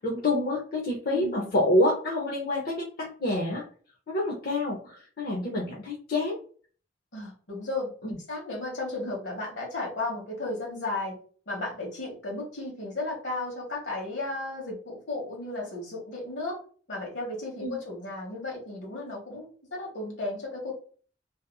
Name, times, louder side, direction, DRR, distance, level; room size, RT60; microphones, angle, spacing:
voice 1, 0.0-3.6 4.1-6.4 8.0-8.2 17.6-17.8, left 1 dB, 55° left, -3 dB, 0.6 m, -27 dB
voice 2, 1.1-1.5 7.1-11.2 11.5-16.6 16.9-20.7, left 2 dB, 75° left, -2 dB, 1.2 m, -34 dB
2.7 x 2.4 x 2.2 m, 0.43 s
head